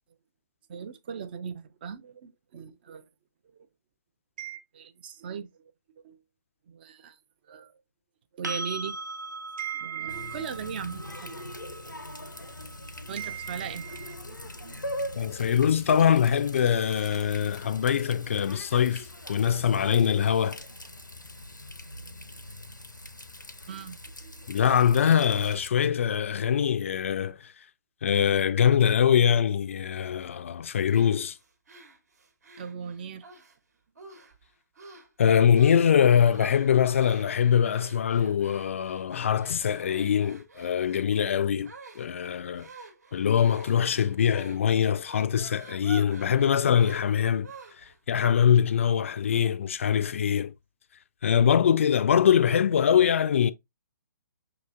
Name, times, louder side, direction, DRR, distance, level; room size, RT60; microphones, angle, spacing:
voice 1, 0.7-3.1 3.5-3.7 4.4-5.5 6.0-6.2 6.7-7.2 7.5-7.7 8.3-9.0 9.6-11.4 13.1-14.4 14.6-14.7 23.7-24.5 32.6-33.2, right 8 dB, 30° right, 0.4 m, -38 dB
sound 1, 8.4-16.3 19.1-19.2, right 3 dB, 75° right, 0.6 m, -41 dB
Water tap faucet, 10.1-25.7, left 1 dB, 90° left, 0.6 m, -42 dB
voice 2, 15.2-20.6 24.5-27.5 28.0-31.4 35.2-42.7 43.1-47.5 47.8-50.5 51.2-53.5, left 8 dB, 45° left, 0.4 m, -23 dB
sound 2, 30.9-33.6 34.0-34.4 34.8-35.1 35.5-35.9 36.3-48.0, right 4 dB, 60° right, 1.1 m, -49 dB
5.9 x 2.9 x 2.4 m
figure-of-eight pair, 130°, 10 cm